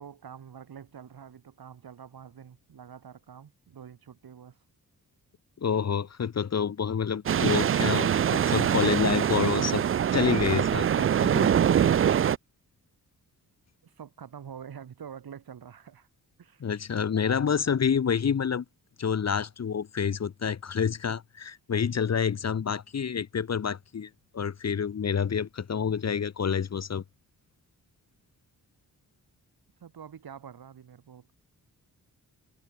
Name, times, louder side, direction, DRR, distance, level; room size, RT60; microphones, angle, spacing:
voice 1, 0.0-4.6 13.8-16.1 16.4-16.7 29.8-31.3, right 8 dB, 70° right, 7.5 m, -46 dB
voice 2, 5.6-9.8 10.1-11.5 16.6-18.6 19.0-27.0, left 7 dB, 45° left, 1.0 m, -28 dB
sound 1, 7.3-12.4, right 9 dB, 35° right, 0.4 m, -24 dB
cardioid pair, 65°, 37 cm